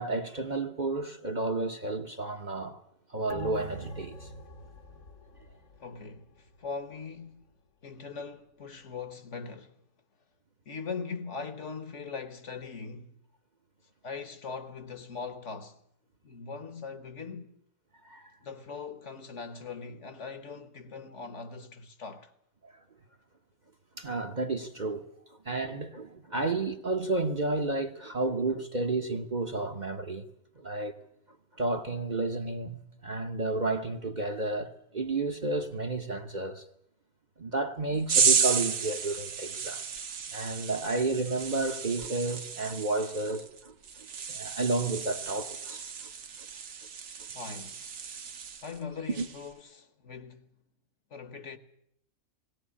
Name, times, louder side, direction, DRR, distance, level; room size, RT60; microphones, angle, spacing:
voice 1, 0.0-2.8 3.1-4.3 18.0-18.3 22.6-22.7 24.0-25.1 25.4-30.2 30.6-30.9 31.6-36.7 37.4-40.0 40.3-45.8 49.2-49.3, right 2 dB, 35° right, 1.0 m, -31 dB
sound 1, 3.3-6.2 6.5-6.6, equal, 85° left, 2.9 m, -43 dB
voice 2, 5.8-7.5 7.8-9.8 10.6-13.2 14.0-15.8 16.2-17.6 18.4-22.3 47.3-47.9 48.6-50.5 51.1-51.6, left 5 dB, 55° left, 1.5 m, -41 dB
sound 2, 38.1-48.8 49.1-49.5, right 6 dB, 65° right, 1.5 m, -32 dB
19.0 x 18.5 x 8.6 m
omnidirectional pair, 1.5 m